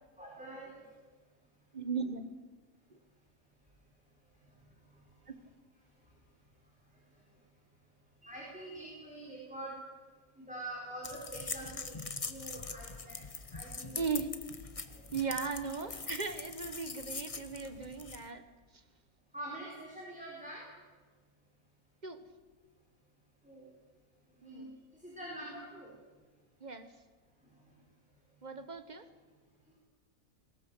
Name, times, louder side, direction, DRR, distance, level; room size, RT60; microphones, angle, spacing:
voice 1, 0.2-0.9 4.4-4.5 4.9-5.0 6.9-7.2 8.2-9.7 10.3-13.2 13.5-14.0 14.9-15.0 19.3-20.6 23.4-23.7 24.4-24.7 24.9-25.9 27.5-27.6, right 1 dB, 5° right, -4 dB, 4.7 m, -45 dB
voice 2, 1.7-2.2 2.9-3.0 5.3-5.4 14.0-14.3 15.1-18.4 18.7-18.8 22.0-22.2 24.4-24.7 26.6-26.9 28.4-29.1, right 5 dB, 30° right, 8 dB, 1.4 m, -37 dB
sound 1, 11.0-18.3, left 4 dB, 25° left, 0.9 m, -43 dB
20.0 x 18.0 x 7.8 m, 1.4 s
omnidirectional pair, 1.6 m